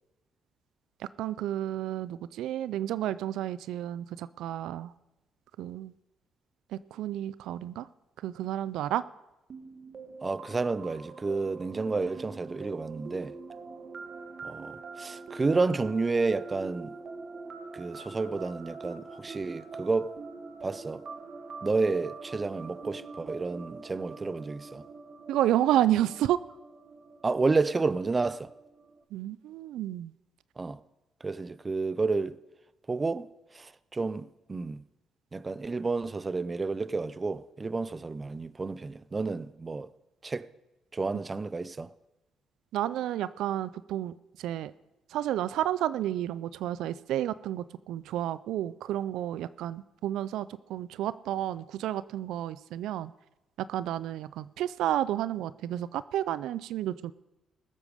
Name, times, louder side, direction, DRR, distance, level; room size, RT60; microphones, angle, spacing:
voice 1, 1.2-4.9 5.6-5.9 6.7-7.9 8.2-9.0 25.3-26.4 29.1-30.1 42.7-44.7 45.1-53.1 53.7-57.1, right 12 dB, 85° right, 0.3 m, -31 dB
sound 1, 9.5-29.0, right 4 dB, 50° right, 1.3 m, -44 dB
voice 2, 10.2-13.3 14.4-17.0 17.7-20.2 20.6-21.0 21.6-24.8 27.2-28.5 30.6-30.8 31.2-32.4 32.9-33.3 33.5-34.8 35.3-39.9 40.2-40.5 40.9-41.9, right 3 dB, 25° right, 0.5 m, -30 dB
19.5 x 8.3 x 5.1 m
cardioid pair, 90°, 0 cm